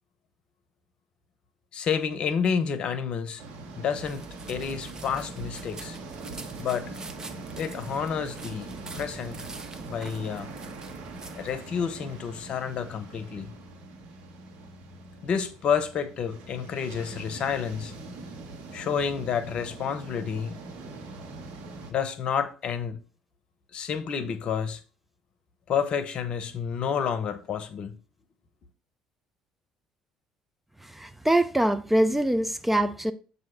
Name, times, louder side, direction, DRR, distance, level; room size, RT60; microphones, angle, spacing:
voice 1, 1.7-3.4 3.8-6.0 6.6-6.9 7.6-9.5 9.9-10.5 11.4-13.5 15.2-17.9 18.7-20.6 21.9-23.0 23.7-24.8 25.7-27.9, left 7 dB, 55° left, 0.8 m, -29 dB
sound 1, 3.4-21.9, right 3 dB, 65° right, 1.3 m, -42 dB
sound 2, 4.0-11.6, right 3 dB, 30° right, 1.0 m, -45 dB
voice 2, 30.9-33.1, right 1 dB, 5° right, 0.5 m, -23 dB
7.5 x 2.8 x 5.8 m
hypercardioid pair, 55°, 2 cm